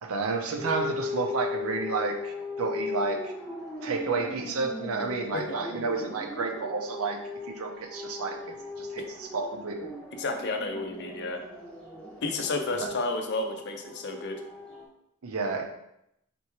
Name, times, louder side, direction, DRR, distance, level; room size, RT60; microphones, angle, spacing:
voice 1, 0.0-3.3 3.8-7.2 7.5-9.9 12.7-12.9 15.2-15.6, right 4 dB, 75° right, 3 dB, 0.6 m, -31 dB
sound 1, 0.6-14.9, left 3 dB, 5° left, 1.2 m, -38 dB
voice 2, 10.2-11.4 12.2-14.4, left 3 dB, 50° left, 4 dB, 0.5 m, -31 dB
4.3 x 3.4 x 3.0 m, 0.80 s
head